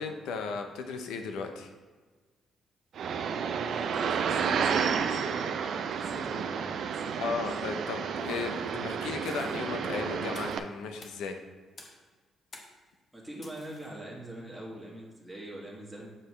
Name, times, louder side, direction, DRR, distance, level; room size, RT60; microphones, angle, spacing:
voice 1, 0.0-1.7 7.2-11.4, left 5 dB, 85° left, 6 dB, 0.6 m, -35 dB
sound 1, 2.9-10.6, right 6 dB, 65° right, 0.4 m, -31 dB
voice 2, 3.6-7.5 8.6-8.8 13.1-16.1, right 1 dB, ahead, -5 dB, 1.5 m, -43 dB
sound 2, 8.2-8.6 9.2-9.6 10.3-10.6 11.0-11.2 11.8-12.1 12.5-12.8 13.4-13.9, left 2 dB, 40° left, 1.0 m, -51 dB
7.3 x 4.5 x 3.2 m, 1.4 s
cardioid pair, 90°, 0 cm